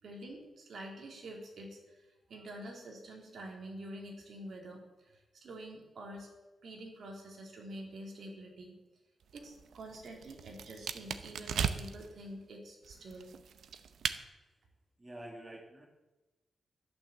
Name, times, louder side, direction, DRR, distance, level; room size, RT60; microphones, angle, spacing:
voice 1, 0.0-6.3 6.6-8.7 9.3-13.3, right 1 dB, 60° right, 0 dB, 3.6 m, -47 dB
sound 1, 9.2-12.1 12.8-14.2, right 7 dB, 90° right, 0.8 m, -38 dB
voice 2, 15.0-15.9, right 1 dB, 15° right, 0 dB, 2.1 m, -48 dB
13.0 x 11.5 x 7.4 m, 1.1 s
wide cardioid pair, 140°, 0 cm